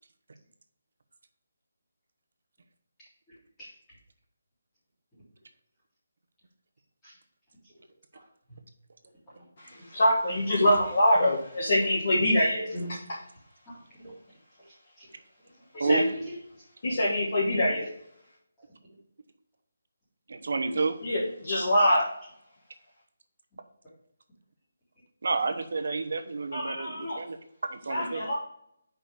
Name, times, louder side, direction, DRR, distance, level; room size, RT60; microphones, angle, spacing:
voice 1, 3.0-4.0 7.0-7.2 7.6-7.7 8.1-8.6 9.3-9.8 11.2-11.3 11.6-11.7 12.2-12.3 12.6-13.0 13.6-13.8 14.0-14.1 14.6-15.1 15.8-16.6 18.6-18.7, equal, 5° left, -11 dB, 2.0 m, -37 dB
voice 2, 9.6-12.7 15.7-16.0 16.8-17.9 21.0-22.1 26.5-27.2 27.9-28.3, left 1 dB, 40° left, -5 dB, 1.5 m, -24 dB
voice 3, 20.3-21.0 25.2-28.2, right 4 dB, 55° right, 7 dB, 0.9 m, -30 dB
5.2 x 4.7 x 6.2 m, 0.69 s
hypercardioid pair, 180°, 0 cm